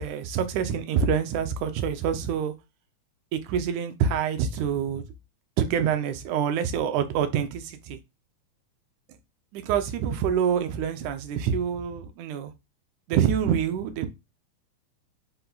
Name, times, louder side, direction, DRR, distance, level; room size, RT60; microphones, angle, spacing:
voice 1, 0.0-2.5 3.3-5.0 5.6-8.0 9.5-12.5 13.1-14.1, right 8 dB, 80° right, 2.1 m, -26 dB
5.6 x 2.3 x 3.9 m
omnidirectional pair, 3.5 m